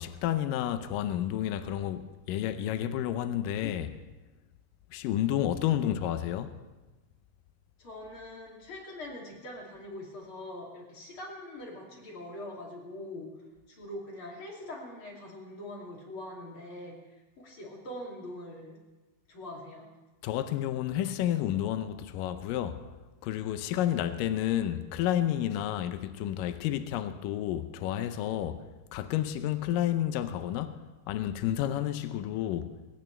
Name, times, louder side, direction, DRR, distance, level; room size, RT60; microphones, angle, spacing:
voice 1, 0.0-4.0 4.9-6.5 20.2-22.8 23.2-28.7 28.9-30.7 31.1-32.8, left 11 dB, 80° left, 2.4 m, -30 dB
voice 2, 7.8-13.3 13.7-18.8 19.3-19.8, left 1 dB, 40° left, 3.3 m, -43 dB
21.0 x 18.5 x 3.3 m
omnidirectional pair, 3.9 m